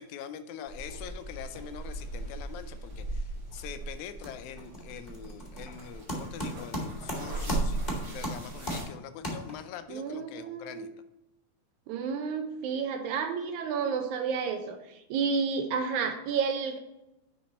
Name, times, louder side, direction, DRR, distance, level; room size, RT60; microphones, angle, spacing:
voice 1, 0.0-10.9, left 8 dB, 85° left, 10 dB, 2.0 m, -44 dB
sound 1, 0.7-8.8, right 2 dB, 40° right, 2.0 m, -38 dB
sound 2, 3.4-3.7 4.0-9.9, equal, 20° left, 1.2 m, -37 dB
voice 2, 9.9-10.8 11.9-16.8, right 5 dB, 80° right, 5 dB, 2.2 m, -31 dB
9.7 x 4.2 x 4.2 m, 0.92 s
omnidirectional pair, 3.4 m